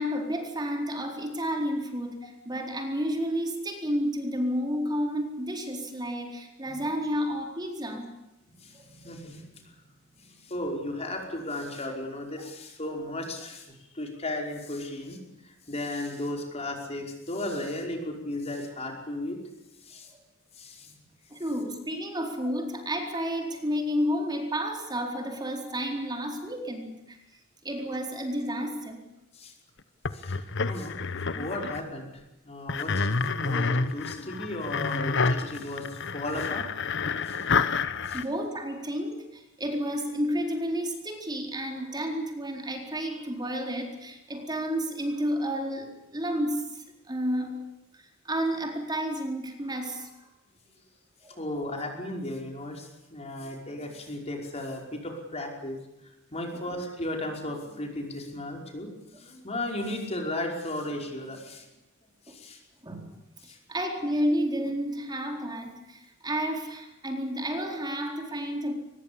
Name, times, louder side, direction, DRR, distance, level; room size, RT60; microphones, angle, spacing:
voice 1, 0.0-8.1 9.0-9.1 21.3-27.2 27.6-29.0 38.1-47.5 47.9-50.3 51.2-51.4 56.5-56.6 62.8-68.7, equal, 20° right, 3 dB, 4.2 m, -31 dB
voice 2, 8.5-9.6 10.1-15.2 15.4-19.4 19.8-20.1 20.5-20.9 29.3-29.5 30.1-31.0 31.3-32.1 32.4-36.9 37.3-37.5 38.1-38.2 51.4-55.8 56.3-58.9 59.2-61.7 62.3-62.6 63.4-63.6, left 1 dB, 30° left, 2 dB, 5.3 m, -35 dB
sound 1, 30.0-31.8 32.7-38.2, left 4 dB, 60° left, 1.2 m, -29 dB
23.5 x 21.0 x 8.7 m, 0.90 s
head